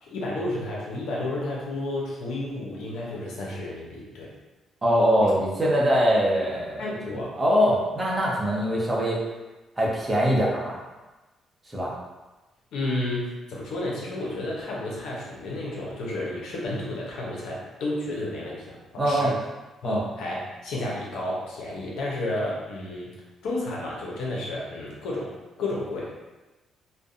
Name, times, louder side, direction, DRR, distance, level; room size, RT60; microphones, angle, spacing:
voice 1, 0.0-4.3 5.2-5.3 6.8-7.3 12.7-18.8 19.0-19.3 19.8-23.1 23.4-25.3 25.6-26.1, left 1 dB, 80° left, -4 dB, 0.7 m, -31 dB
voice 2, 4.8-9.2 9.8-10.8 11.7-12.0 19.0-19.3 19.8-20.0, equal, 20° right, -4 dB, 0.6 m, -23 dB
2.6 x 2.1 x 2.4 m, 1.1 s
cardioid pair, 90°, 0 cm